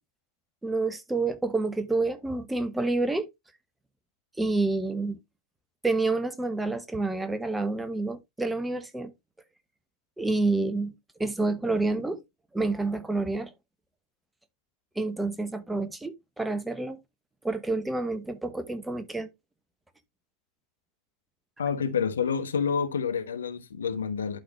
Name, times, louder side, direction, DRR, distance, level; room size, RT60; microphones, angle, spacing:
voice 1, 0.6-3.3 4.4-5.2 5.8-9.1 10.2-10.9 11.2-12.2 12.5-13.5 15.0-17.0 17.4-19.3, right 3 dB, 5° right, 1.0 m, -28 dB
voice 2, 21.6-24.4, left 6 dB, 70° left, 1.0 m, -28 dB
11.5 x 4.0 x 3.0 m
figure-of-eight pair, 90°, 0 cm